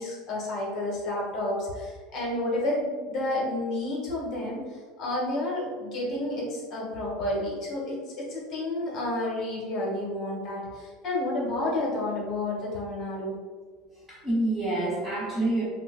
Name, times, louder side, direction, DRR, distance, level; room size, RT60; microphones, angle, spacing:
voice 1, 0.0-13.3, left 1 dB, 45° left, -4 dB, 1.2 m, -30 dB
voice 2, 13.9-15.6, right 2 dB, 10° right, -7 dB, 1.1 m, -27 dB
5.6 x 2.1 x 2.4 m, 1.6 s
supercardioid pair, 140°, 0 cm